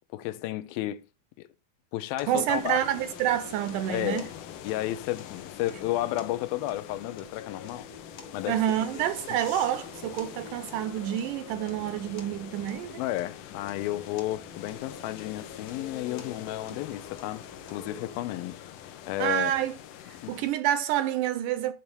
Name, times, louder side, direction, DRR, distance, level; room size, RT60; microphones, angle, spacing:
voice 1, 0.1-1.0 1.4-1.5 1.9-2.8 3.9-4.3 4.6-7.9 8.3-8.6 13.0-17.5 17.7-18.6 19.1-19.5 20.2-20.4, left 15 dB, 90° left, 2.5 m, -32 dB
sound 1, 2.2-18.2, left 4 dB, 50° left, 1.8 m, -48 dB
voice 2, 2.3-4.3 8.5-13.0 16.7-16.8 19.2-19.8 20.1-21.7, right 11 dB, 80° right, 1.9 m, -28 dB
sound 2, 2.5-20.5, left 11 dB, 75° left, 2.3 m, -45 dB
10.5 x 4.8 x 7.0 m
omnidirectional pair, 4.1 m